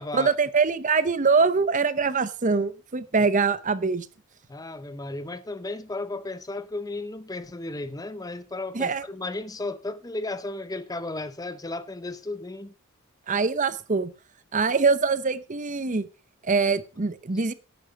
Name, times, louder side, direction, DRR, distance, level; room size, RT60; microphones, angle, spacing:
voice 1, 0.1-4.1 8.7-9.1 13.3-14.1 14.5-16.0 16.4-17.5, right 4 dB, 35° right, 0.7 m, -23 dB
voice 2, 4.5-12.7, left 2 dB, 15° left, 0.6 m, -34 dB
11.0 x 8.7 x 5.2 m
head